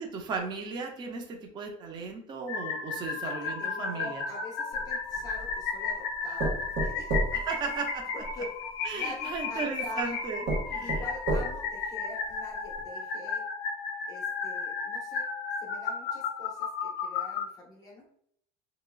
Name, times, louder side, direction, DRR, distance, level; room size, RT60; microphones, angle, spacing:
voice 1, 0.0-4.2 7.3-8.0 8.8-11.0, right 4 dB, 25° right, 2 dB, 0.4 m, -36 dB
sound 1, 2.5-17.5, left 5 dB, 60° left, 0.6 m, -34 dB
voice 2, 3.1-7.2 8.1-8.5 8.9-10.1 10.8-13.4 14.1-15.3 15.6-18.1, left 1 dB, 20° left, -2 dB, 0.8 m, -44 dB
sound 2, 4.7-5.6 6.4-8.4 9.3-9.4 10.0-10.1 10.5-11.8 12.3-12.4 12.7-12.8, right 2 dB, 60° right, 1.5 m, -31 dB
3.6 x 2.9 x 2.2 m, 0.65 s
cardioid pair, 175°, 19 cm